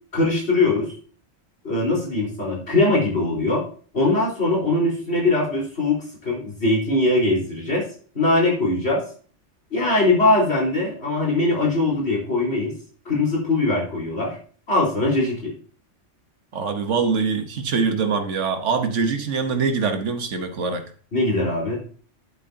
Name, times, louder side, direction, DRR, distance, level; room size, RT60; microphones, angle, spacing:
voice 1, 0.1-0.9 1.6-3.7 3.9-7.9 8.1-9.0 9.7-12.7 13.0-14.4 14.7-15.5 21.1-21.8, left 2 dB, 60° left, -4 dB, 4.8 m, -21 dB
voice 2, 16.5-20.9, right 5 dB, 85° right, 6 dB, 1.5 m, -23 dB
10.5 x 8.7 x 2.8 m, 0.43 s
omnidirectional pair, 1.2 m